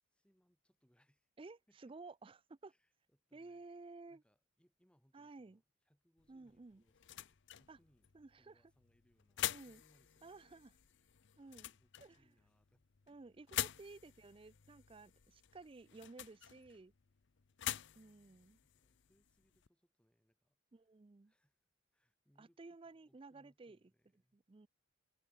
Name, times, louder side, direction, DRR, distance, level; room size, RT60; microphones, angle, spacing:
voice 1, 0.1-1.3 1.7-1.9 2.7-3.6 4.1-8.1 8.4-10.7 11.0-12.8 18.6-20.6 21.2-21.6 21.9-24.4, equal, 5° left, 7.7 m, -76 dB
voice 2, 1.4-2.7 3.3-4.2 5.1-5.6 6.3-6.8 7.7-7.8 8.1-8.6 9.5-9.8 10.2-10.7 11.4-11.7 12.0-12.2 13.1-16.9 17.7-18.6 20.7-21.3 22.4-23.8 24.3-24.7, right 3 dB, 25° right, 0.4 m, -55 dB
sound 1, 6.2-19.7, left 12 dB, 55° left, 0.6 m, -47 dB
head